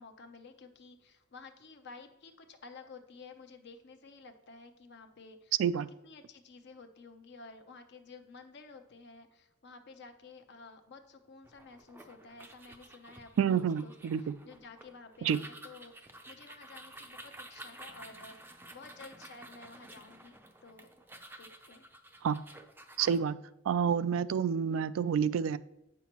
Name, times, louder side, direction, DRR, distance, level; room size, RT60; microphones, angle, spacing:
voice 1, 0.0-5.5 6.0-13.9 14.4-20.9 21.4-21.9, left 4 dB, 60° left, 7 dB, 0.7 m, -52 dB
sound 1, 11.4-23.2, right 1 dB, 10° right, 0.5 m, -52 dB
voice 2, 13.4-14.2 15.2-15.4 22.2-22.4 23.0-23.4 23.7-25.6, right 7 dB, 80° right, 15 dB, 0.3 m, -28 dB
8.0 x 5.7 x 3.0 m, 0.92 s
head